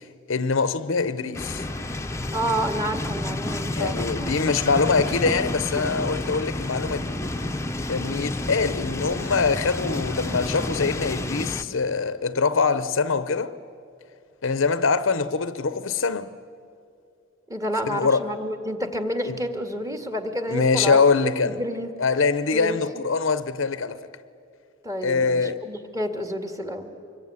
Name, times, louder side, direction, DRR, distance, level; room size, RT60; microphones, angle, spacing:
voice 1, 0.3-1.6 3.7-7.2 7.9-13.5 14.4-16.4 17.9-18.2 19.3-19.4 20.5-21.6 22.0-24.0 25.0-25.6, left 4 dB, 65° left, 0.8 m, -23 dB
sound 1, 1.3-11.6, left 1 dB, 15° left, 0.9 m, -30 dB
voice 2, 2.3-4.3 17.5-21.0 21.4-21.9 22.5-22.8 24.8-26.9, equal, 15° right, 2.0 m, -29 dB
25.5 x 22.0 x 9.7 m
head